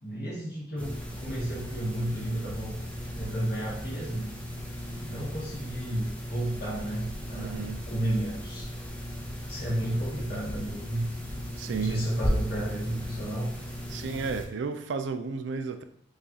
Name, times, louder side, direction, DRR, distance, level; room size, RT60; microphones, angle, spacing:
voice 1, 0.0-2.8 3.1-4.3 5.0-8.7 9.5-11.1 11.7-13.5, right 1 dB, 50° left, 0.9 m, -32 dB
sound 1, 0.8-14.5, equal, 5° left, 0.5 m, -36 dB
voice 2, 7.3-7.8 11.6-12.1 13.9-15.8, right 5 dB, 70° right, 0.3 m, -33 dB
4.7 x 2.3 x 2.8 m
head